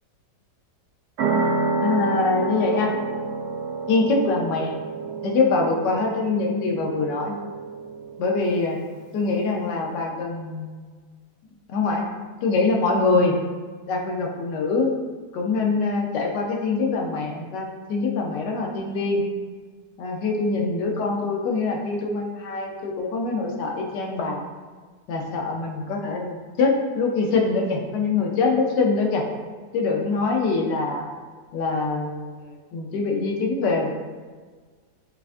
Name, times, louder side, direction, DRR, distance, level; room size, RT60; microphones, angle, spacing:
sound 1, 1.2-8.4, right 3 dB, 90° right, 1.3 m, -28 dB
voice 1, 1.8-2.9 3.9-4.7 5.2-7.3 8.2-8.8 9.1-10.8 11.7-12.1 12.4-13.3 13.9-14.9 15.3-19.2 20.0-24.4 25.1-29.2 29.7-31.0 31.5-32.4 32.7-33.9, left 3 dB, 85° left, 1 dB, 1.3 m, -24 dB
6.6 x 2.4 x 2.5 m, 1.5 s
omnidirectional pair, 1.8 m